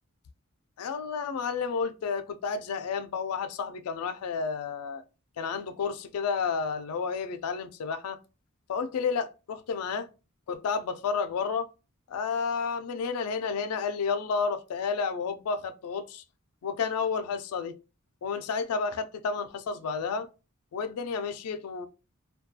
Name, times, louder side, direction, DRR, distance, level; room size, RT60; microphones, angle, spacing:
voice 1, 0.8-5.0 5.4-8.2 8.7-10.1 10.5-11.7 12.1-16.2 16.6-17.7 18.2-20.3 20.7-21.9, left 5 dB, 85° left, 0.4 m, -31 dB
2.3 x 2.2 x 2.7 m
head